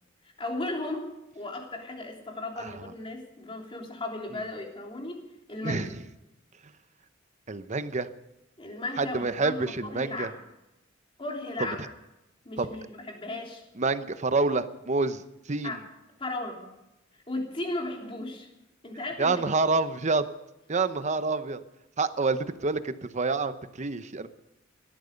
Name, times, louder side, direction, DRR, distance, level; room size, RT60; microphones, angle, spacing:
voice 1, 0.2-5.2 5.5-5.9 8.6-10.4 11.2-11.9 12.4-13.6 14.5-14.6 15.6-15.8 16.2-16.6 17.3-18.5 18.8-19.4, left 2 dB, 30° left, 1 dB, 3.3 m, -36 dB
voice 2, 7.5-8.1 9.0-10.3 12.6-12.7 13.8-15.2 15.5-15.8 19.2-20.3 20.7-21.6 22.0-24.3, right 3 dB, 35° right, 11 dB, 0.9 m, -27 dB
18.0 x 13.5 x 5.3 m, 0.92 s
head